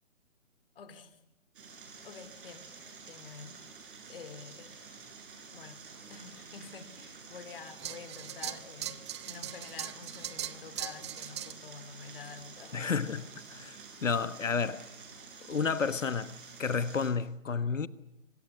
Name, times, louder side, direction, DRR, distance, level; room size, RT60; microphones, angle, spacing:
voice 1, 0.7-1.2 2.0-2.7 3.1-3.6 4.1-4.7 5.5-13.2, left 6 dB, 45° left, 2.8 m, -48 dB
sound 1, 1.5-17.1, right 5 dB, 40° right, 7.8 m, -50 dB
sound 2, 7.8-11.5, right 12 dB, 20° right, 0.9 m, -40 dB
voice 2, 12.7-14.9 15.5-17.9, left 5 dB, 70° left, 1.4 m, -31 dB
25.0 x 21.0 x 9.7 m
figure-of-eight pair, 140°, 40 cm